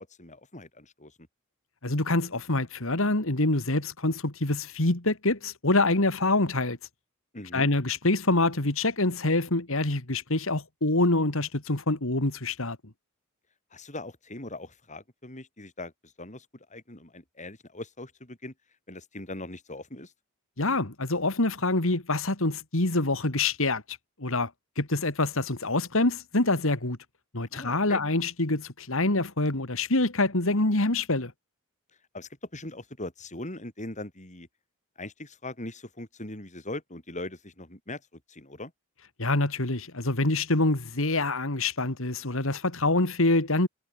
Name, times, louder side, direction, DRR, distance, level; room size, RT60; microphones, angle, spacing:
voice 1, 0.2-1.2 7.3-7.7 13.7-18.5 18.9-20.1 27.5-28.0 32.1-34.5 35.0-38.7, left 2 dB, 35° left, 6.4 m, -40 dB
voice 2, 1.8-6.8 7.5-12.8 20.6-24.5 24.8-27.0 27.3-31.3 39.2-43.7, left 2 dB, 65° left, 2.6 m, -26 dB
head